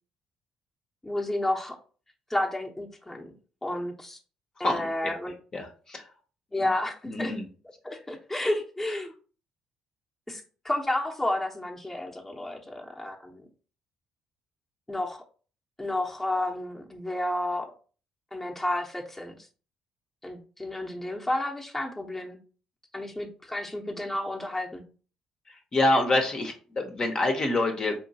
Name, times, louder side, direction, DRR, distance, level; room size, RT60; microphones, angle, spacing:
voice 1, 1.0-1.8 2.3-3.3 3.6-4.2 4.6-5.3 6.5-7.4 7.8-9.1 10.3-13.4 14.9-15.2 15.8-17.7 18.3-19.4 20.2-22.4 22.9-24.8, left 1 dB, 15° left, 0 dB, 0.9 m, -31 dB
voice 2, 5.5-6.0 7.1-7.4 25.7-27.9, left 2 dB, 40° left, 3 dB, 0.9 m, -26 dB
4.3 x 2.9 x 2.7 m, 0.38 s
hypercardioid pair, 50°, 2 cm